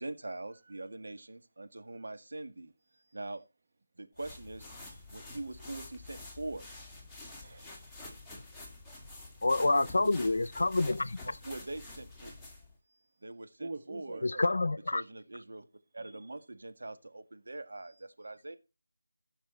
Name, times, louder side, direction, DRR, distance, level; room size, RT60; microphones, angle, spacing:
voice 1, 0.0-2.7 3.1-3.4 4.0-4.7 5.1-6.7 11.2-12.3 13.2-14.3 14.9-15.6 15.9-18.6, right 2 dB, 65° right, 1.8 m, -43 dB
sound 1, 4.2-12.7, left 2 dB, ahead, 1.8 m, -48 dB
voice 2, 7.4-8.0 9.6-10.3 13.6-14.4 16.0-16.1, right 3 dB, 40° right, 1.1 m, -44 dB
voice 3, 9.4-11.3 14.2-15.0, left 2 dB, 65° left, 0.6 m, -28 dB
15.0 x 6.0 x 4.4 m
figure-of-eight pair, 165°, 0 cm